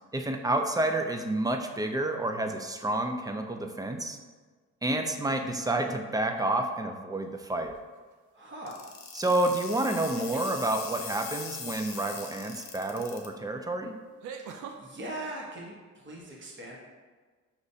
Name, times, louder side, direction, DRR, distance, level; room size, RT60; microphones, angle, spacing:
voice 1, 0.1-4.2 4.8-7.7 9.2-13.9, right 1 dB, 15° right, 5 dB, 0.3 m, -29 dB
sound 1, 7.4-7.8 9.9-10.6 12.8-12.9 14.2-14.8, right 6 dB, 75° right, 0.5 m, -41 dB
voice 2, 8.3-8.8 14.5-16.8, right 1 dB, 40° right, -3 dB, 1.1 m, -41 dB
sound 2, 8.7-13.3, left 5 dB, 45° left, 0.8 m, -41 dB
5.4 x 3.0 x 2.7 m, 1.4 s
cardioid pair, 90°, 30 cm